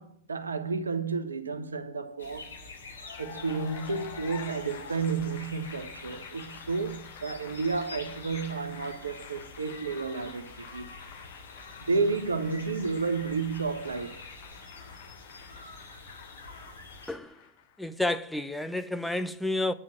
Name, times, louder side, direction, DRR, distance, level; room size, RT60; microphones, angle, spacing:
voice 1, 0.0-2.5 3.2-11.0 11.8-14.2, right 4 dB, 75° right, 1.0 m, -31 dB
sound 1, 2.2-17.1, left 3 dB, 75° left, 3.5 m, -47 dB
Cheering / Applause, 2.9-17.9, left 8 dB, 55° left, 1.5 m, -49 dB
voice 2, 17.1-17.4 17.8-19.7, left 2 dB, 5° left, 0.7 m, -30 dB
9.9 x 7.3 x 7.4 m
figure-of-eight pair, 90°, 0 cm